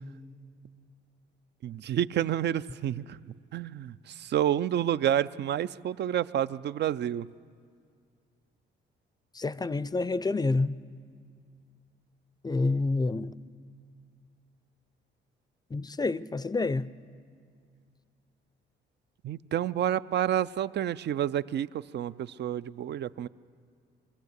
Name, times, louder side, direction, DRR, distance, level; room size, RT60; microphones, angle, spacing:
voice 1, 1.6-3.2 3.5-7.3 19.2-23.3, right 11 dB, 60° right, 0.5 m, -29 dB
voice 2, 9.3-10.8 12.4-13.3 15.7-16.9, left 3 dB, 20° left, 0.5 m, -28 dB
22.5 x 15.5 x 8.1 m
cardioid pair, 90°, 20 cm